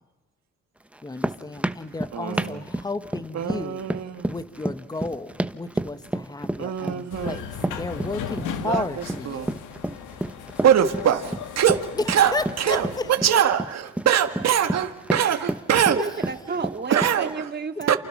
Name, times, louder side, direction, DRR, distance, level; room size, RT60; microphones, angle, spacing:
sound 1, 0.9-17.3, right 1 dB, 5° right, 1.0 m, -30 dB
voice 1, 1.0-3.8 4.2-9.5 12.3-13.0, left 3 dB, 15° left, 1.3 m, -33 dB
voice 2, 2.1-2.6 3.3-4.3 6.6-7.4 8.6-9.5 10.6-16.0 16.9-17.4 17.9-18.0, right 9 dB, 60° right, 1.9 m, -23 dB
sound 2, 7.1-13.1, left 7 dB, 85° left, 2.2 m, -37 dB
voice 3, 16.0-18.0, right 5 dB, 35° right, 2.2 m, -31 dB
29.5 x 28.5 x 6.0 m
cardioid pair, 90°, 30 cm